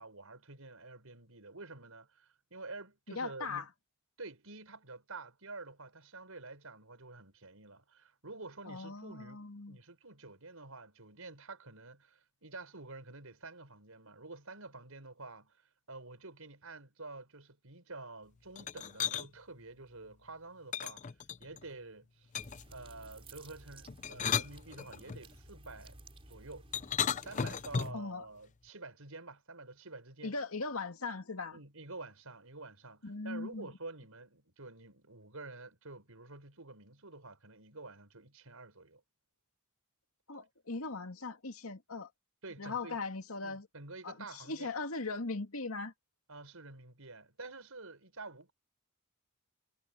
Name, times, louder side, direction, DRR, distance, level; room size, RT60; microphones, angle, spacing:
voice 1, 0.0-3.7 4.2-15.6 15.9-21.1 21.4-22.3 22.7-26.0 26.3-26.7 27.1-30.3 31.5-39.0 42.4-43.0 43.4-44.7 46.3-48.5, right 3 dB, 80° right, 5.4 m, -49 dB
voice 2, 3.1-3.6 8.7-9.8 27.9-28.2 30.2-31.6 33.0-33.7 40.3-42.1 42.6-43.7 44.0-45.9, left 3 dB, 80° left, 2.3 m, -39 dB
sound 1, 18.6-19.3 20.7-21.6 22.3-22.7 23.9-25.2 26.7-28.1, left 7 dB, 35° left, 0.5 m, -35 dB
sound 2, 22.4-27.9, right 2 dB, 25° right, 4.1 m, -55 dB
head